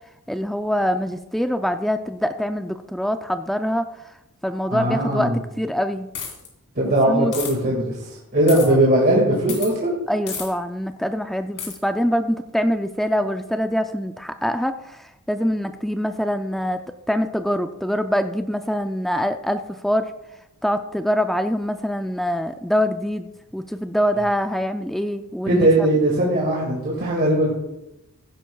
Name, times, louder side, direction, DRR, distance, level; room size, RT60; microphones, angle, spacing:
voice 1, 0.3-3.8 4.4-6.1 6.8-7.3 8.6-8.8 10.1-16.8 17.1-20.1 20.6-25.7, equal, ahead, 8 dB, 0.3 m, -24 dB
voice 2, 4.7-5.4 6.8-10.0 25.5-27.5, right 1 dB, 45° right, -3 dB, 2.0 m, -19 dB
sound 1, 6.1-6.5 7.3-7.5 8.5-8.7 9.5-9.7 10.3-10.5 11.6-11.8, left 7 dB, 55° left, 2.6 m, -31 dB
15.5 x 10.5 x 2.3 m, 0.91 s
head